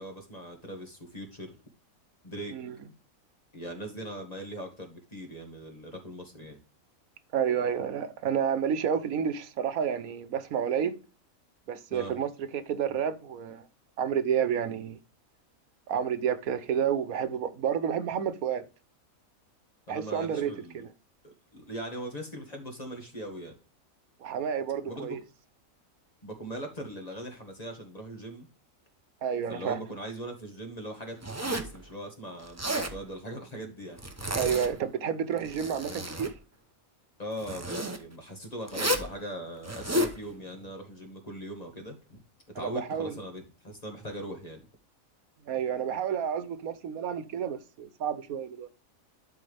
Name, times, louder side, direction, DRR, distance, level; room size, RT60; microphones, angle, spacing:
voice 1, 0.0-1.6 2.2-2.6 3.5-6.6 11.9-12.2 19.9-20.8 21.2-23.6 24.9-25.2 26.2-28.5 29.5-34.0 37.2-42.2 42.6-44.7, right 1 dB, 30° left, 1.8 m, -40 dB
voice 2, 7.3-11.0 11.7-13.6 14.0-15.0 15.9-18.6 19.9-20.9 24.2-25.2 29.2-29.8 34.3-36.3 42.6-43.2 45.4-48.7, right 8 dB, 85° right, 1.3 m, -30 dB
Zipper (clothing), 31.2-31.8 32.4-33.0 34.0-34.9 35.3-36.3 37.4-38.0 38.7-39.1 39.6-40.2, equal, 15° right, 0.7 m, -31 dB
12.0 x 4.5 x 3.4 m
omnidirectional pair, 1.4 m